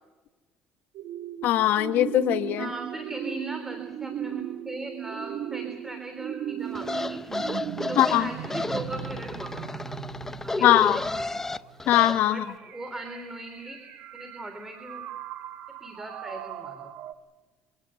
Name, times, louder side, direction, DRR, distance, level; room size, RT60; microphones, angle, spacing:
sound 1, 0.9-17.1, right 10 dB, 65° right, 1.4 m, -37 dB
voice 1, 1.4-2.7 8.0-8.3 10.6-11.0 11.9-12.4, left 13 dB, 70° left, 9 dB, 1.5 m, -21 dB
voice 2, 2.6-7.2 7.8-10.0 10.4-11.4 12.3-13.8 14.1-15.0 15.8-16.8, right 1 dB, 10° right, 5 dB, 3.6 m, -39 dB
sound 2, 6.7-12.2, left 2 dB, 10° left, 0.6 m, -32 dB
26.5 x 18.0 x 7.9 m, 1.3 s
cardioid pair, 105°, 3 cm